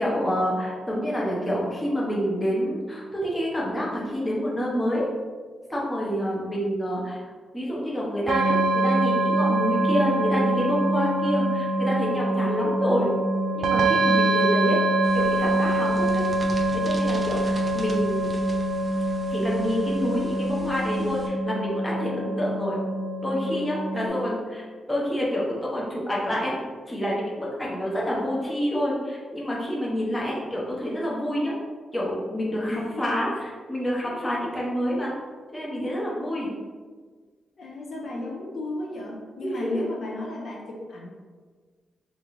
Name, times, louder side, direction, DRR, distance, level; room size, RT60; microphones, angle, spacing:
voice 1, 0.0-5.0 5.7-7.2 7.5-13.1 13.5-14.8 15.1-16.2 16.7-18.3 19.3-22.8 23.2-26.5 26.9-31.5 31.9-35.1 35.5-36.5 39.4-39.8, equal, 10° left, -5 dB, 0.7 m, -28 dB
sound 1, 8.3-24.1, right 1 dB, 80° right, 0.3 m, -24 dB
sound 2, 15.0-21.3, right 1 dB, 25° right, 0.5 m, -42 dB
voice 2, 23.9-24.4 32.7-33.1 37.6-41.1, left 2 dB, 55° left, -2 dB, 0.6 m, -35 dB
3.6 x 2.4 x 3.1 m, 1.5 s
wide cardioid pair, 150°, 0 cm